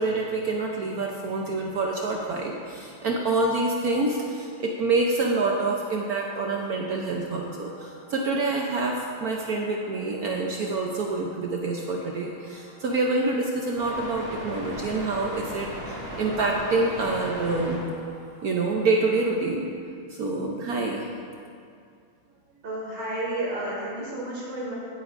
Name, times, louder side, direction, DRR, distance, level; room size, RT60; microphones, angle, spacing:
voice 1, 0.0-17.8 18.4-19.7 20.1-21.1, right 3 dB, 70° right, 0 dB, 0.8 m, -27 dB
sound 1, 5.5-19.3, equal, 25° right, 2.5 m, -41 dB
voice 2, 22.6-24.7, right 1 dB, 50° right, -5 dB, 3.0 m, -31 dB
16.0 x 8.4 x 2.5 m, 2.4 s
omnidirectional pair, 2.4 m